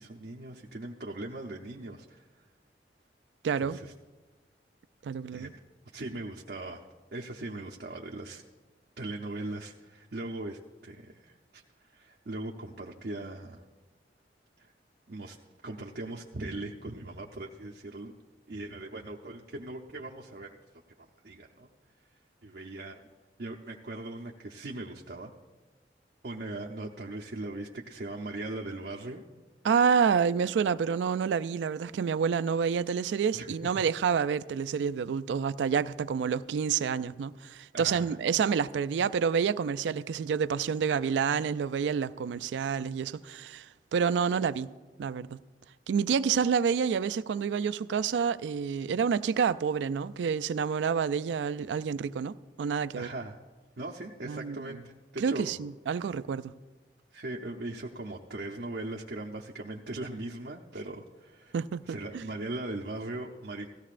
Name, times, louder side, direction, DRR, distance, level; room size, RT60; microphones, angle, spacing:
voice 1, 0.0-2.2 3.6-3.9 5.3-5.6 5.9-6.9 7.1-8.4 9.0-11.6 11.9-13.6 14.6-14.7 15.1-15.4 15.6-18.1 18.5-20.6 21.0-21.7 22.4-23.0 23.4-25.3 26.2-29.2 33.3-33.5 37.7-38.2 52.9-53.4 53.8-54.8 55.1-55.6 57.1-61.5 61.8-63.7, right 2 dB, 60° right, 0.7 m, -39 dB
voice 2, 3.4-3.8 5.0-5.5 29.6-44.7 45.0-45.4 45.9-53.1 54.3-54.8 55.2-56.5 61.5-62.2, right 6 dB, 85° right, 0.3 m, -28 dB
17.0 x 15.0 x 2.5 m
head